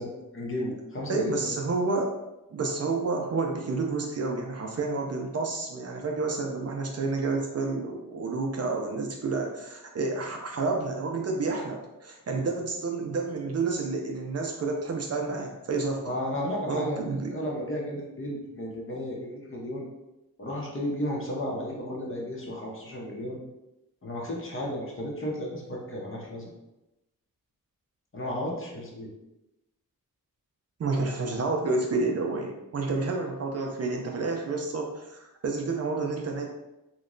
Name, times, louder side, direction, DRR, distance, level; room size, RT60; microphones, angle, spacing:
voice 1, 0.0-1.5 16.0-17.0 17.3-19.9 20.4-23.4 24.0-26.5 28.1-29.1, left 1 dB, 35° left, -3 dB, 0.7 m, -33 dB
voice 2, 1.1-2.1 2.5-16.1 16.7-17.3 30.8-36.5, right 3 dB, 45° right, 2 dB, 0.4 m, -30 dB
3.0 x 2.1 x 3.7 m, 0.95 s
wide cardioid pair, 165°, 35 cm